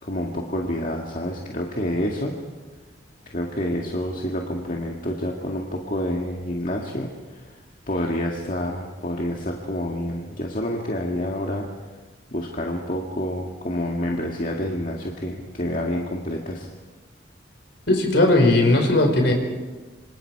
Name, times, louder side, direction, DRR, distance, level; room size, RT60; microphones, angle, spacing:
voice 1, 0.0-2.3 3.3-7.6 7.9-11.7 12.3-16.7, left 1 dB, 45° left, 0 dB, 2.0 m, -28 dB
voice 2, 17.9-19.3, left 2 dB, 60° left, 3 dB, 5.0 m, -17 dB
27.0 x 26.5 x 4.8 m, 1.2 s
head